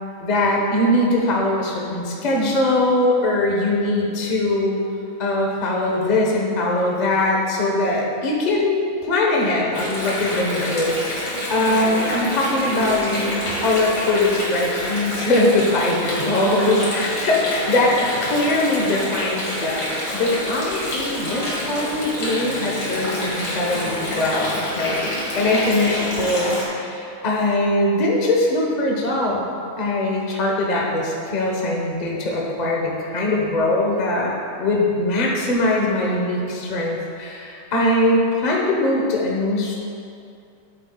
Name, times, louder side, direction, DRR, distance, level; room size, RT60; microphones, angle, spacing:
voice 1, 0.2-4.8 5.2-17.9 18.2-29.4 29.8-39.7, left 1 dB, 30° left, -2 dB, 0.8 m, -21 dB
Water, 9.7-26.7, left 1 dB, 50° left, 2.4 m, -27 dB
12.5 x 8.3 x 2.3 m, 2.5 s
omnidirectional pair, 2.3 m